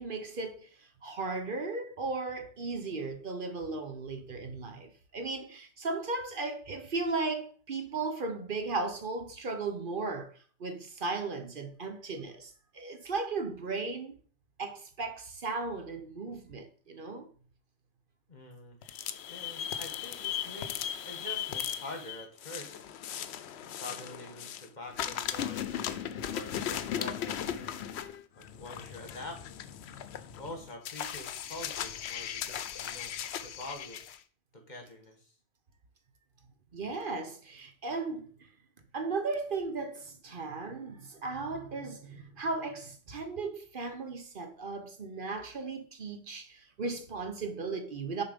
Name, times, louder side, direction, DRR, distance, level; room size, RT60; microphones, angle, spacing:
voice 1, 0.0-10.3 10.6-14.2 14.6-17.3 36.7-38.5 38.9-48.2, right 3 dB, 55° right, 1.0 m, -36 dB
voice 2, 18.3-19.0 19.3-22.8 23.6-27.6 28.4-29.4 30.3-33.1 33.4-34.0 34.5-35.3, left 1 dB, 45° left, 1.6 m, -46 dB
sound 1, 18.8-24.7 24.9-34.2, left 9 dB, 80° left, 0.9 m, -37 dB
6.8 x 4.4 x 5.2 m
omnidirectional pair, 1.1 m